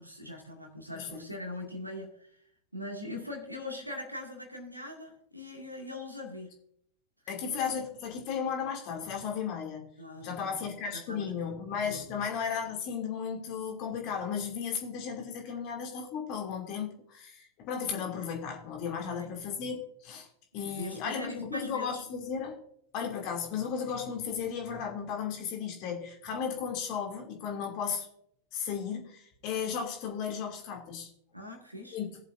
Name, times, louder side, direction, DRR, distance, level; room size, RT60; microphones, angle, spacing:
voice 1, 0.0-2.3 2.7-6.5 7.3-7.4 10.0-10.6 10.9-11.5 11.8-12.0 19.1-19.3 20.6-22.0 31.3-32.0, left 1 dB, 90° right, 1 dB, 2.2 m, -41 dB
voice 2, 7.3-9.9 10.2-20.3 20.5-22.6 22.9-28.1 28.5-31.1 31.9-32.1, left 7 dB, 40° left, 1 dB, 2.6 m, -35 dB
19.0 x 7.3 x 2.6 m, 0.70 s
figure-of-eight pair, 90°, 0 cm